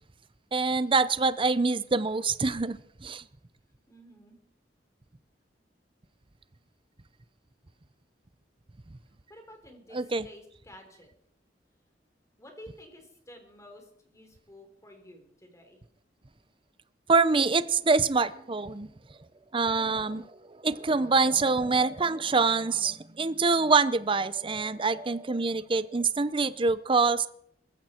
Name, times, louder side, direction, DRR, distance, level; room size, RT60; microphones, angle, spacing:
voice 1, 0.5-3.2 9.9-10.3 17.1-18.9 19.5-20.2 20.5-27.3, right 4 dB, 30° right, 15 dB, 0.7 m, -25 dB
voice 2, 3.9-4.4 9.3-11.1 12.4-15.8 19.8-20.2, equal, 20° left, 4 dB, 3.6 m, -51 dB
21.0 x 15.0 x 4.4 m, 0.68 s
head